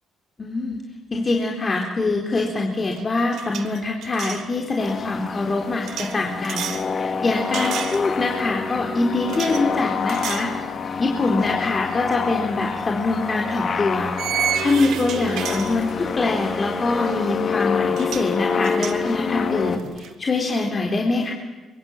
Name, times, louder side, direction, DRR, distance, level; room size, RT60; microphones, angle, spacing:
voice 1, 0.4-0.8 1.1-10.5 11.0-14.1 14.6-21.3, left 3 dB, 35° left, 1 dB, 4.1 m, -24 dB
sound 1, 2.3-2.6 2.8-4.5 5.9-6.9 7.5-8.4 9.3-9.6 10.1-10.5 11.0-11.2 12.7-12.8 14.2-16.2 17.6-17.7 17.9-18.3 18.6-20.1, right 9 dB, 80° right, 2.4 m, -31 dB
sound 2, 4.8-19.8, left 5 dB, 50° left, 2.7 m, -27 dB
24.5 x 23.0 x 9.0 m, 1.2 s
cardioid pair, 90°, 0 cm